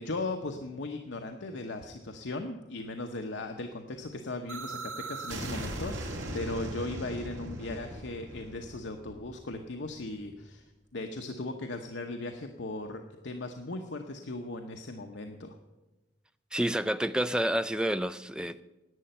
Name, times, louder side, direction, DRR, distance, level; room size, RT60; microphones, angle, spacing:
voice 1, 0.0-10.7 10.9-15.6, left 2 dB, 75° left, 0.9 m, -38 dB
sound 1, 4.5-10.2, right 1 dB, 90° right, 1.9 m, -39 dB
voice 2, 16.5-18.6, right 1 dB, 5° right, 0.3 m, -29 dB
11.0 x 8.6 x 9.1 m
head